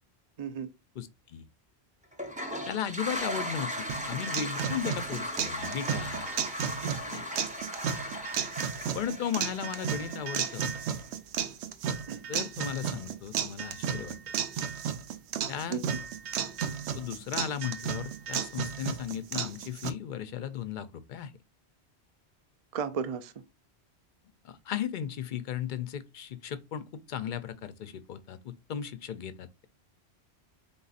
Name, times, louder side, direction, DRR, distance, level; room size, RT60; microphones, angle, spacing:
voice 1, 0.4-0.7 6.8-7.1 12.1-12.2 15.7-16.0 22.7-23.3, right 6 dB, 50° right, 0.4 m, -35 dB
voice 2, 1.0-1.4 2.7-6.3 7.1-7.2 8.9-10.7 12.3-14.2 15.5-15.8 17.0-21.3 24.4-29.7, left 9 dB, 60° left, 0.6 m, -36 dB
Toilet flush, 2.1-11.0, equal, 10° right, 0.8 m, -38 dB
sound 1, 3.9-19.9, right 8 dB, 85° right, 0.9 m, -34 dB
3.9 x 3.9 x 2.4 m
omnidirectional pair, 1.1 m